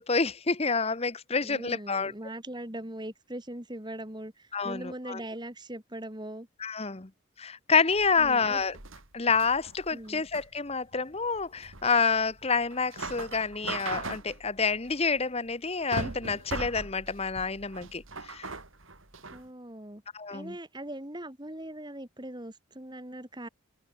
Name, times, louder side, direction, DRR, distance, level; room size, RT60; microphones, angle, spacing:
voice 1, 0.0-2.1 4.5-5.2 6.6-7.1 7.4-8.8 9.1-18.5 20.1-20.5, left 5 dB, 30° left, 1.0 m, -28 dB
voice 2, 1.4-6.5 8.2-8.6 9.9-10.2 19.3-20.0 20.3-23.5, right 1 dB, 20° right, 2.5 m, -40 dB
sound 1, 7.9-19.5, right 3 dB, 70° right, 4.5 m, -40 dB
open air
head